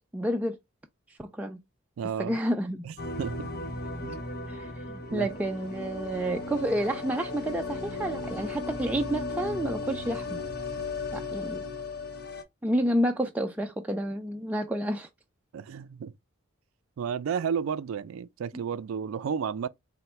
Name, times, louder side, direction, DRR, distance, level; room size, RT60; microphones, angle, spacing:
voice 1, 0.1-0.6 1.2-1.6 2.2-2.9 4.5-10.4 11.1-11.6 12.6-15.1, right 1 dB, 5° right, 0.3 m, -30 dB
voice 2, 2.0-2.4 2.8-3.5 4.0-4.2 5.1-5.3 15.5-16.1 17.0-19.7, right 7 dB, 85° right, 0.3 m, -32 dB
sound 1, 3.0-12.4, left 3 dB, 55° left, 0.8 m, -36 dB
3.9 x 2.1 x 4.3 m
head